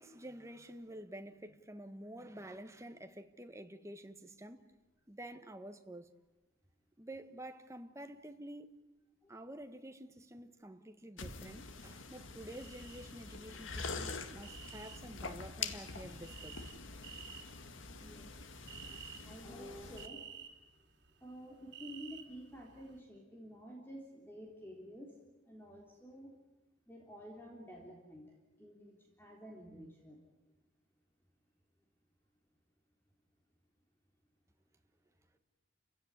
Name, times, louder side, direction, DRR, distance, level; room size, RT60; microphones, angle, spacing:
voice 1, 0.0-4.6 5.1-6.1 7.0-8.8 9.3-16.6, right 1 dB, 15° right, 1.4 m, -49 dB
sound 1, 11.2-20.1, left 4 dB, 85° left, 1.9 m, -45 dB
sound 2, 12.5-13.0 13.3-23.0, right 8 dB, 60° right, 4.2 m, -53 dB
voice 2, 18.9-20.2 21.2-25.1 25.5-26.3 26.9-28.3 28.6-30.2, equal, 10° left, 3.6 m, -51 dB
29.5 x 16.5 x 9.7 m
head